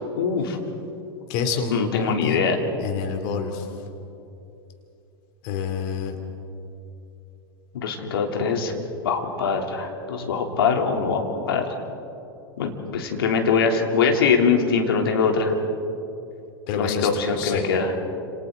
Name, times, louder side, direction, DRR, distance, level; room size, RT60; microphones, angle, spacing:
voice 1, 0.2-0.6 1.7-2.6 7.7-8.7 9.0-11.7 12.6-15.5 16.7-17.9, left 5 dB, 70° left, 2 dB, 3.2 m, -22 dB
voice 2, 1.3-2.4 2.8-3.6 5.4-6.1 16.7-17.1 17.4-17.6, left 6 dB, 50° left, 5 dB, 2.9 m, -27 dB
30.0 x 28.0 x 3.9 m, 2.8 s
figure-of-eight pair, 90°, 13 cm